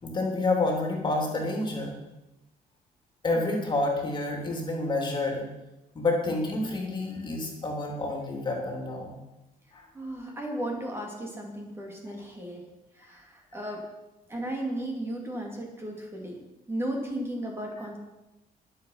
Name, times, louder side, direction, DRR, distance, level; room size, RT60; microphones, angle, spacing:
voice 1, 0.0-1.9 3.2-5.5 5.9-9.1 9.7-9.9, left 2 dB, 30° left, 1 dB, 3.2 m, -29 dB
voice 2, 9.9-12.6 12.9-13.8 14.3-16.4 16.7-18.0, right 1 dB, 15° right, 0 dB, 2.7 m, -35 dB
22.5 x 7.7 x 5.7 m, 0.97 s
cardioid pair, 160°, 16 cm